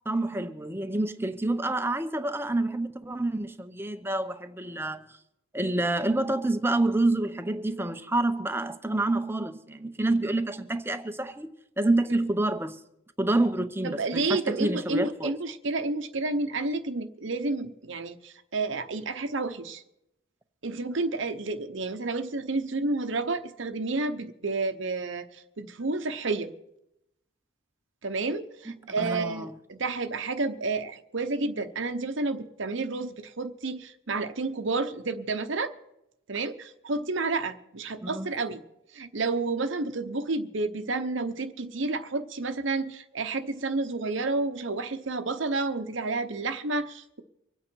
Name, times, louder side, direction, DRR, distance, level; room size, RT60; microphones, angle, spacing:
voice 1, 0.1-5.0 5.5-11.5 11.8-12.8 13.2-15.3 28.7-29.6 38.0-38.3, right 2 dB, 10° right, 0.7 m, -28 dB
voice 2, 13.8-19.8 20.6-26.5 28.0-35.7 36.3-38.6 38.9-47.2, right 3 dB, 60° right, 0.9 m, -30 dB
25.0 x 8.6 x 4.6 m
head